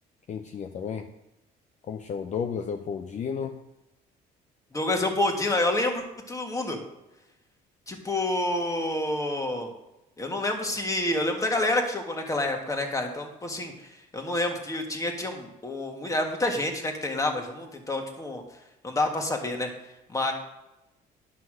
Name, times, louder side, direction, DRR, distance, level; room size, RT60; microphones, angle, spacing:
voice 1, 0.3-1.1 1.9-3.6, left 6 dB, 45° left, 6 dB, 0.7 m, -32 dB
voice 2, 4.7-6.8 7.9-9.7 10.2-13.7 14.1-18.4 18.8-19.7 20.1-20.3, left 2 dB, 20° left, 3 dB, 1.9 m, -28 dB
11.0 x 5.8 x 6.3 m, 0.94 s
cardioid pair, 110°, 17 cm